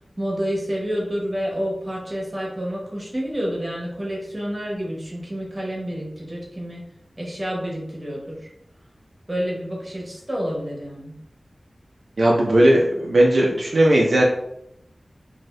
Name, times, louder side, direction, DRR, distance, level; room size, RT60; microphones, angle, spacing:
voice 1, 0.2-6.8 7.2-8.5 9.3-11.2, equal, 25° right, -3 dB, 1.1 m, -29 dB
voice 2, 12.2-14.3, right 1 dB, 65° right, -3 dB, 0.5 m, -17 dB
2.7 x 2.6 x 3.2 m, 0.78 s
wide cardioid pair, 80°, 0 cm